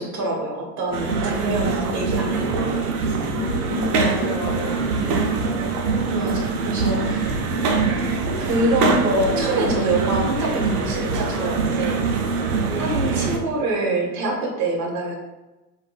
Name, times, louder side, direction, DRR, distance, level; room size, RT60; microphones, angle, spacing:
voice 1, 0.0-3.1 6.1-7.3 8.4-12.1 12.8-15.1, right 1 dB, 40° right, -2 dB, 1.2 m, -25 dB
sound 1, 0.9-13.4, right 4 dB, 70° right, 0.6 m, -23 dB
voice 2, 3.3-5.8, left 3 dB, 35° left, -5 dB, 0.6 m, -32 dB
3.6 x 2.5 x 2.3 m, 1.1 s
hypercardioid pair, 85°, 46 cm